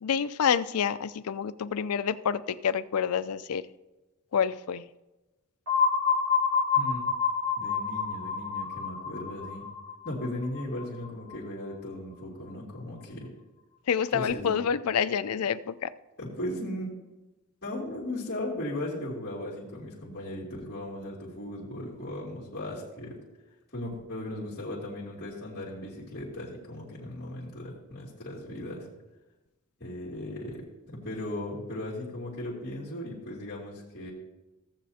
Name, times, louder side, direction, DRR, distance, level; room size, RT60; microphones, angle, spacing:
voice 1, 0.0-3.7 4.3-4.8 13.9-15.9, left 7 dB, 80° left, 15 dB, 0.4 m, -28 dB
sound 1, 5.7-11.3, left 5 dB, 70° right, 1.5 m, -28 dB
voice 2, 6.7-7.1 7.6-9.7 10.0-13.3 14.1-14.5 15.4-15.5 16.2-16.9 17.6-23.2 23.7-28.9 29.8-34.1, left 1 dB, 45° left, -7 dB, 2.7 m, -37 dB
16.5 x 7.5 x 2.8 m, 1.1 s
head